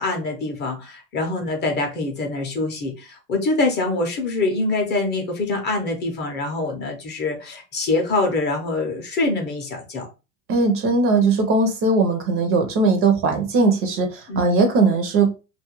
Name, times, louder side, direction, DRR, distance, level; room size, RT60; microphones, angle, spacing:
voice 1, 0.0-10.1 14.3-14.4, left 2 dB, 25° left, 0.5 m, -24 dB
voice 2, 10.5-15.3, right 3 dB, 35° right, 0.5 m, -19 dB
2.3 x 2.1 x 2.8 m
supercardioid pair, 115°, 40 cm